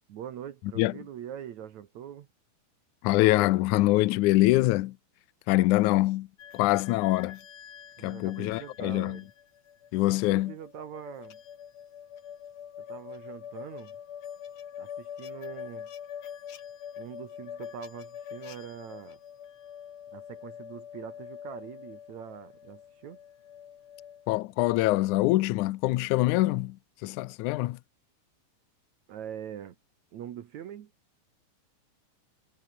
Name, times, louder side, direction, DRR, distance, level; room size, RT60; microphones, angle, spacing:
voice 1, 0.1-2.3 8.0-9.3 10.3-11.4 12.9-14.0 14.8-15.9 17.0-19.2 20.1-23.2 29.1-29.8 30.1-30.9, right 9 dB, 60° right, 2.1 m, -43 dB
voice 2, 3.0-5.0 5.5-6.3 6.5-7.4 8.0-9.2 9.9-10.5 24.3-26.8 27.0-27.8, left 18 dB, 90° left, 1.7 m, -24 dB
sound 1, 6.4-24.3, left 9 dB, 50° left, 2.6 m, -45 dB
omnidirectional pair, 4.5 m